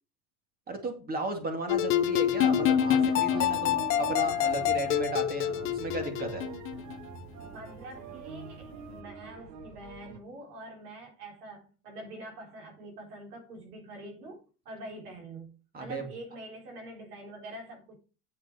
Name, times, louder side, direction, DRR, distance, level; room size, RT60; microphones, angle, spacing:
voice 1, 0.7-6.4 15.7-16.1, right 2 dB, 20° right, 2.2 m, -35 dB
sound 1, 1.7-7.0, left 10 dB, 30° left, 0.6 m, -27 dB
sound 2, 2.3-10.2, right 6 dB, 40° right, 1.3 m, -42 dB
voice 2, 7.5-18.0, right 1 dB, 90° right, 4.6 m, -45 dB
8.3 x 7.2 x 4.9 m
supercardioid pair, 145°, 45 cm